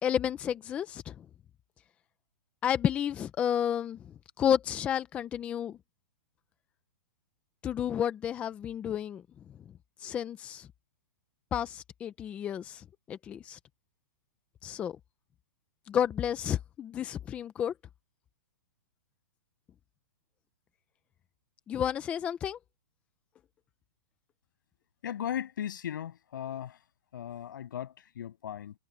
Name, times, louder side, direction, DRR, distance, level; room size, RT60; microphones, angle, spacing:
voice 1, 0.0-1.2 2.6-5.8 7.6-9.2 10.0-10.7 11.5-13.6 14.6-15.0 15.9-17.7 21.7-22.6, left 9 dB, 10° left, 0.5 m, -31 dB
voice 2, 25.0-26.8 27.1-28.7, left 10 dB, 65° left, 7.5 m, -37 dB
hypercardioid pair, 170°, 11 cm